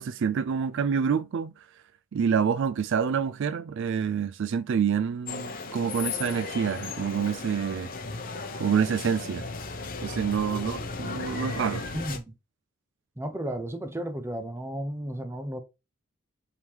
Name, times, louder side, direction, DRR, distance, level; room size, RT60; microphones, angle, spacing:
voice 1, 0.0-1.5 2.1-7.9 8.6-9.5 10.0-11.8, right 7 dB, 60° right, 0.3 m, -27 dB
sound 1, 5.3-12.2, left 3 dB, 40° left, 0.8 m, -35 dB
voice 2, 11.9-12.3 13.2-15.6, right 1 dB, 10° right, 0.7 m, -34 dB
4.7 x 3.6 x 2.8 m
head